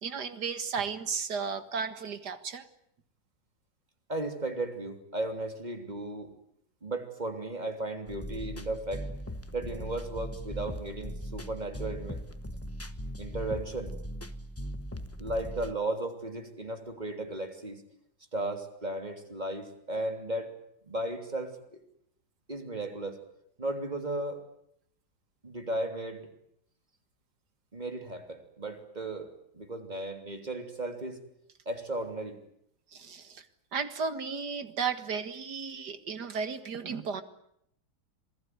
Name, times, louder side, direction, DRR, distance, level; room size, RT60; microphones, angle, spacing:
voice 1, 0.0-2.7 32.9-33.5 33.7-37.2, right 5 dB, 55° right, 11 dB, 2.2 m, -34 dB
voice 2, 4.1-6.3 6.8-9.1 9.5-12.2 13.2-13.9 15.2-17.8 18.3-20.5 20.8-21.8 22.5-23.2 23.6-24.4 25.4-26.3 27.7-31.2 31.6-32.4, right 2 dB, 20° right, 6 dB, 3.2 m, -35 dB
sound 1, 8.1-15.7, equal, 10° left, 0.6 m, -39 dB
27.0 x 19.0 x 9.5 m, 0.73 s
omnidirectional pair, 2.2 m